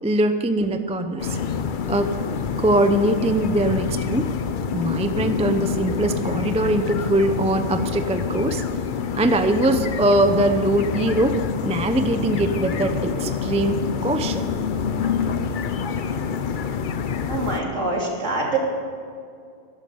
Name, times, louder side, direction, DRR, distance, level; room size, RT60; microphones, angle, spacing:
voice 1, 0.0-1.4 1.9-2.1 2.6-4.3 4.7-8.6 9.1-14.5, right 1 dB, 10° right, 8 dB, 0.4 m, -22 dB
sound 1, 1.2-17.6, left 6 dB, 50° left, 0.6 m, -27 dB
voice 2, 17.3-18.6, right 3 dB, 65° right, -2 dB, 3.2 m, -25 dB
12.5 x 11.5 x 7.1 m, 2.2 s
omnidirectional pair, 1.4 m